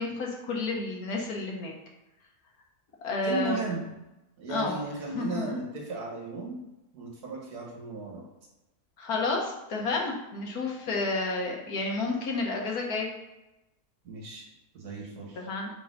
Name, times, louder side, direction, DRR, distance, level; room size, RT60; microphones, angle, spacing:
voice 1, 0.0-1.7 3.0-3.7 4.5-4.8 5.1-5.6 9.0-13.1 15.4-15.7, left 3 dB, 70° left, 0 dB, 1.6 m, -30 dB
voice 2, 3.2-3.8 4.4-6.6 6.9-8.2 14.0-14.5 14.7-15.5, right 3 dB, 70° right, -2 dB, 2.0 m, -35 dB
4.6 x 3.8 x 5.4 m, 0.97 s
omnidirectional pair, 1.7 m